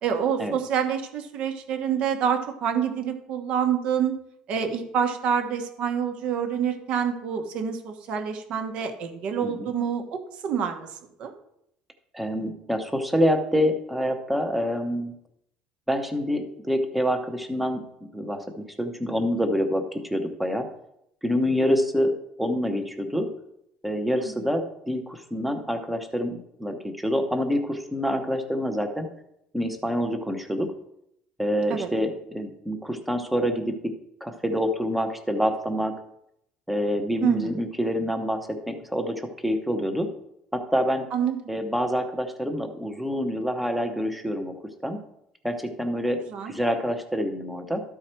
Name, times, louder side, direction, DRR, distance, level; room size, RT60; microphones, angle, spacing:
voice 1, 0.0-4.1 4.5-10.9 11.2-11.3 24.2-24.3 31.7-31.9 37.2-37.5 41.1-41.4 46.3-46.5, right 7 dB, 50° right, 6 dB, 1.2 m, -27 dB
voice 2, 12.1-15.1 15.9-17.8 18.1-20.7 21.2-22.1 22.4-23.3 23.8-29.1 29.5-30.7 31.4-33.9 34.2-35.9 36.7-40.1 40.5-41.1 41.5-44.5 44.8-45.0 45.4-46.2 46.5-47.8, equal, 5° right, 6 dB, 0.9 m, -26 dB
12.5 x 4.8 x 4.4 m, 0.78 s
cardioid pair, 165°, 2 cm